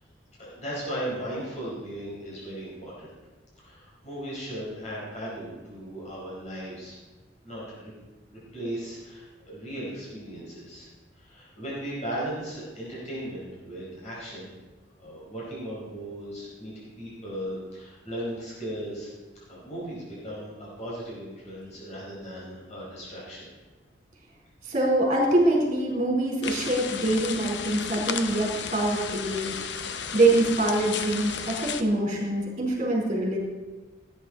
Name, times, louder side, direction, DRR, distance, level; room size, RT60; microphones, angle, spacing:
voice 1, 0.4-3.1 3.6-7.0 7.4-7.9 8.3-10.9 11.1-14.5 15.0-19.1 19.5-23.5, right 1 dB, 35° left, -6 dB, 5.1 m, -37 dB
voice 2, 24.6-29.6 30.1-33.4, right 1 dB, 40° right, -2 dB, 4.1 m, -24 dB
sound 1, 26.4-31.8, left 6 dB, 65° left, 0.8 m, -34 dB
16.0 x 9.5 x 4.3 m, 1.2 s
head